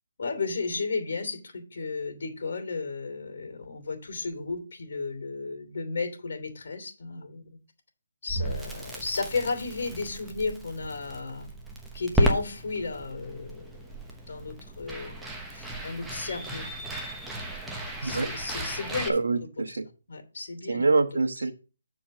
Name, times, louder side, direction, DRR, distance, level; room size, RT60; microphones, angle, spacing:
voice 1, 0.2-7.6 8.2-11.5 11.9-13.7 14.3-16.7 18.0-19.2 19.7-19.8 20.1-20.8, left 4 dB, 55° left, 2.9 m, -33 dB
Crackle, 8.3-19.1, right 1 dB, 5° right, 1.0 m, -34 dB
voice 2, 19.1-19.9 20.7-21.5, right 3 dB, 75° right, 1.2 m, -25 dB
7.4 x 4.6 x 6.6 m
hypercardioid pair, 160°, 0 cm